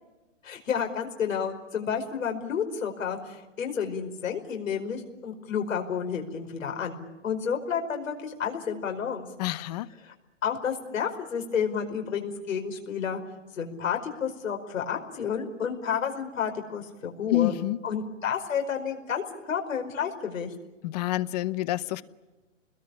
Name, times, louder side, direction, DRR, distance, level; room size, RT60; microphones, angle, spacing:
voice 1, 0.4-9.3 10.0-10.1 10.4-13.2 13.5-17.5 17.8-20.5, left 7 dB, 85° left, 5.1 m, -31 dB
voice 2, 9.4-9.9 17.3-17.8 20.8-22.0, left 16 dB, 30° left, 0.9 m, -27 dB
28.5 x 21.5 x 8.5 m
hypercardioid pair, 155°, 38 cm